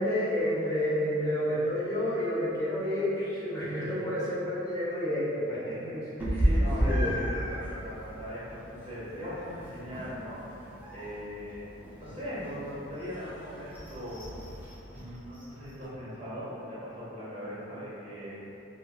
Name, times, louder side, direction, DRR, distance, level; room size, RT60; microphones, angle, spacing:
voice 1, 0.0-6.5 6.8-7.1, equal, 20° left, -10 dB, 0.7 m, -30 dB
Meow, 6.2-15.8, equal, 10° right, 0.3 m, -34 dB
voice 2, 6.4-10.4 10.9-11.6 12.0-14.2 14.9-18.4, equal, 35° right, -10 dB, 0.8 m, -39 dB
2.9 x 2.4 x 2.2 m, 2.8 s
head